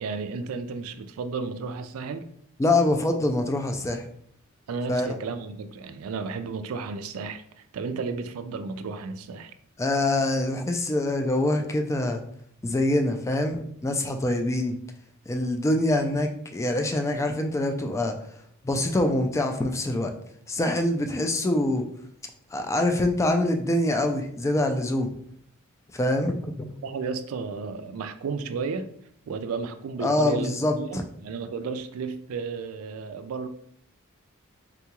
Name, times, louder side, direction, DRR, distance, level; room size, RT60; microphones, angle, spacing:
voice 1, 0.0-2.3 4.7-7.4 7.7-9.5 26.8-28.9 29.3-33.5, right 4 dB, 75° right, 0.3 m, -33 dB
voice 2, 2.6-4.0 4.9-5.1 9.8-12.2 12.6-14.8 15.3-18.1 18.6-20.1 20.5-21.8 22.5-25.1 25.9-26.7 30.0-31.0, left 1 dB, 15° left, 0.3 m, -25 dB
3.7 x 2.3 x 2.9 m
head